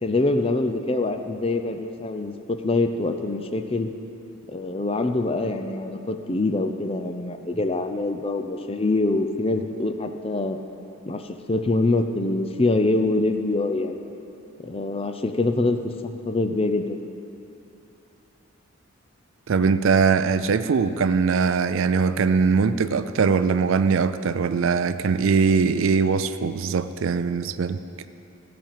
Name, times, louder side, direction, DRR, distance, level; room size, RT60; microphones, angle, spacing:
voice 1, 0.0-3.9 4.5-10.6 11.0-14.0 14.6-17.0, left 2 dB, 25° left, 7 dB, 0.5 m, -24 dB
voice 2, 19.5-27.8, right 5 dB, 65° right, 12 dB, 0.4 m, -21 dB
15.0 x 5.1 x 7.5 m, 2.7 s
head